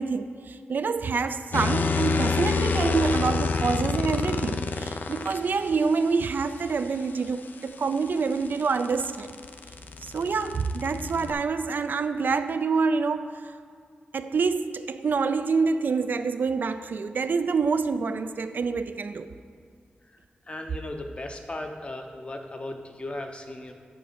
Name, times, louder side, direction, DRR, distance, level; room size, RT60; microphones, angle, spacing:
voice 1, 0.0-9.4 10.0-13.5 14.1-19.3, right 4 dB, 65° right, 10 dB, 0.3 m, -27 dB
sound 1, 1.5-5.4 7.7-11.3, left 4 dB, 60° left, 0.4 m, -28 dB
voice 2, 20.5-23.7, left 1 dB, 30° left, 4 dB, 0.7 m, -36 dB
7.7 x 4.3 x 6.7 m, 2.2 s
wide cardioid pair, 95°, 4 cm